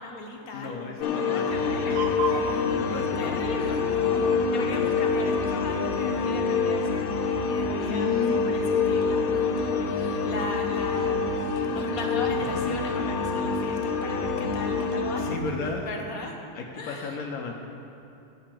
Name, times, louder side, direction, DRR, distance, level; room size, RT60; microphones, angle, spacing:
voice 1, 0.0-7.0 7.5-8.6 8.9-15.3 15.8-16.3 16.8-17.1, left 2 dB, 50° left, 1 dB, 1.3 m, -37 dB
voice 2, 0.5-3.4 3.7-3.8 4.3-4.4 6.2-6.3 7.9-8.4 11.7-11.8 12.5-12.6 15.2-16.0 16.5-17.5, left 4 dB, 65° left, 0 dB, 0.9 m, -35 dB
sound 1, 1.0-15.4, left 5 dB, 85° left, 1.5 m, -26 dB
sound 2, 1.5-15.8, right 3 dB, 65° right, 1.1 m, -37 dB
10.5 x 5.5 x 7.4 m, 2.7 s
omnidirectional pair, 2.3 m